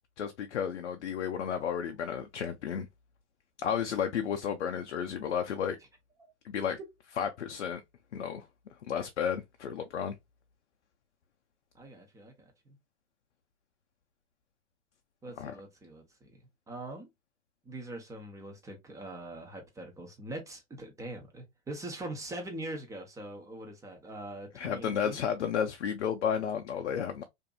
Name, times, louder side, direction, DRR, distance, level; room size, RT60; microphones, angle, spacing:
voice 1, 0.2-2.9 3.6-5.8 6.4-6.8 7.2-7.8 8.1-8.5 8.8-10.2 15.4-15.6 24.5-27.2, left 8 dB, 85° left, 0.5 m, -32 dB
voice 2, 11.7-12.3 12.7-12.8 15.2-17.1 17.6-25.2, right 1 dB, 10° right, 0.7 m, -43 dB
2.6 x 2.6 x 2.3 m
hypercardioid pair, 115°, 35 cm